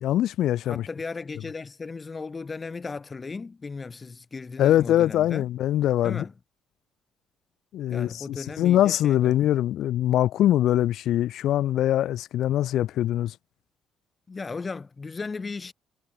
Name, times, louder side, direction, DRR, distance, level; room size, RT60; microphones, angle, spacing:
voice 1, 0.0-0.9 4.6-6.2 7.7-13.3, left 12 dB, 75° left, 0.3 m, -23 dB
voice 2, 0.6-5.5 6.0-6.3 7.9-9.3 14.3-15.7, left 4 dB, 30° left, 3.7 m, -36 dB
cardioid pair, 85°, 0 cm